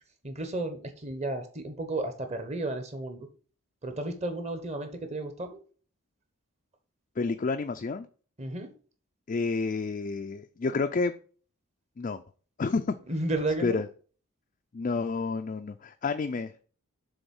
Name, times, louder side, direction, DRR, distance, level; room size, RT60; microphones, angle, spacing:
voice 1, 0.2-3.3 3.8-5.6 8.4-8.7 13.1-13.8, right 2 dB, 30° right, 7 dB, 1.0 m, -33 dB
voice 2, 7.2-8.1 9.3-11.1 12.0-12.2 12.6-12.9 13.6-13.9 14.7-16.5, left 4 dB, 35° left, 7 dB, 0.3 m, -29 dB
7.0 x 3.6 x 5.3 m, 0.40 s
head